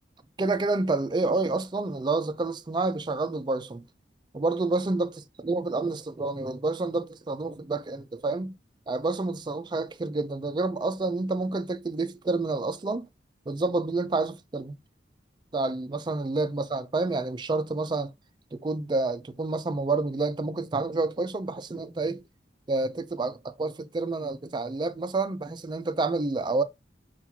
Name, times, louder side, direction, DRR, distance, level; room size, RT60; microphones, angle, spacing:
voice 1, 0.4-3.8 4.3-5.1 5.4-8.5 8.9-13.1 13.5-14.8 15.5-18.1 18.5-22.2 22.7-26.6, right 3 dB, 25° right, 0.3 m, -28 dB
5.7 x 2.4 x 2.8 m
head